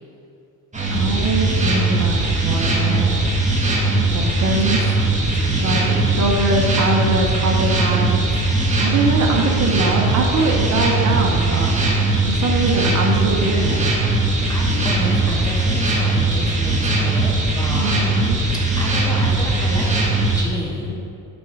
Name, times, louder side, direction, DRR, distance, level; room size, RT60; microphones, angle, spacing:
sound 1, 0.7-20.4, right 2 dB, 20° right, 1.8 m, -19 dB
voice 1, 0.9-3.1 4.1-4.8 5.6-8.2 8.8-11.8 12.3-13.9 17.7-18.4, right 2 dB, 50° right, -1 dB, 1.3 m, -22 dB
voice 2, 5.3-6.4 9.3-10.2 12.6-12.7 14.5-17.9 18.8-21.0, equal, 10° left, -3 dB, 1.8 m, -31 dB
8.1 x 5.4 x 4.9 m, 2.5 s
cardioid pair, 90°, 37 cm